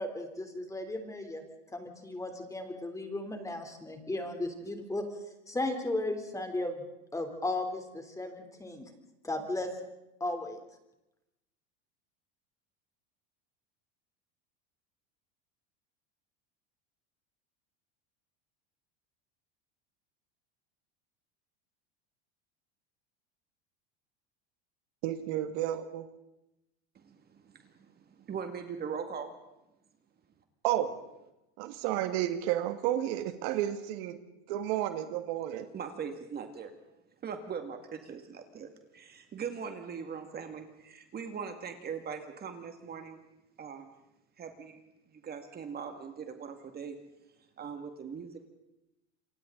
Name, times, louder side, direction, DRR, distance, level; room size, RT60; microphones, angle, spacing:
voice 1, 0.0-1.4 1.7-5.0 5.5-6.8 7.1-8.8 9.2-9.7 10.2-10.6, left 2 dB, 10° left, 5 dB, 3.4 m, -35 dB
voice 2, 25.0-26.1 30.6-30.9 31.6-34.2 34.5-35.7, right 12 dB, 65° right, 9 dB, 1.8 m, -31 dB
voice 3, 27.0-29.3 35.7-36.7 37.2-43.2 43.6-43.9 44.4-44.8 45.2-47.0 47.6-48.5, right 6 dB, 30° right, 6 dB, 2.1 m, -41 dB
28.0 x 24.5 x 3.9 m, 0.90 s
supercardioid pair, 125°, 33 cm